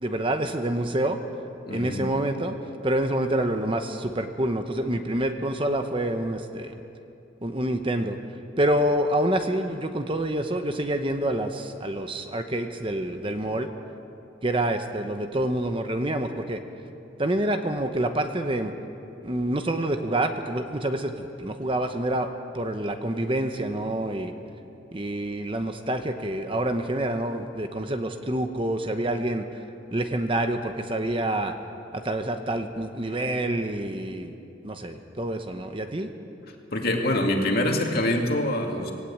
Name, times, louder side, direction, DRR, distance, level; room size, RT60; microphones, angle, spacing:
voice 1, 0.0-1.2 1.7-2.5 2.8-6.7 7.4-8.2 8.6-13.7 14.4-16.6 17.2-18.7 19.2-22.3 22.5-24.3 24.9-29.4 29.9-31.5 31.9-34.3 34.6-36.1, right 1 dB, 30° right, 7 dB, 1.0 m, -27 dB
voice 2, 1.7-2.1 36.7-38.9, left 1 dB, 55° left, 2 dB, 2.4 m, -25 dB
20.0 x 17.0 x 8.6 m, 2.7 s
head